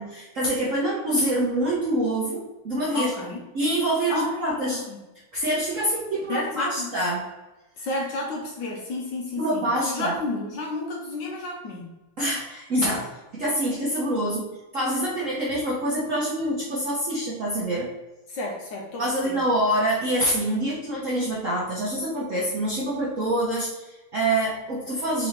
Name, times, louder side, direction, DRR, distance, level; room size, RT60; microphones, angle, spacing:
voice 1, 0.0-3.1 3.5-4.8 5.3-7.2 9.4-10.1 12.2-14.4 14.7-17.9 19.0-25.3, right 1 dB, 60° right, -6 dB, 0.8 m, -26 dB
voice 2, 2.9-3.4 4.1-5.0 6.3-7.0 7.8-11.9 18.3-19.4, left 2 dB, 70° left, -1 dB, 1.2 m, -32 dB
4.0 x 3.8 x 3.0 m, 1.1 s
omnidirectional pair, 2.4 m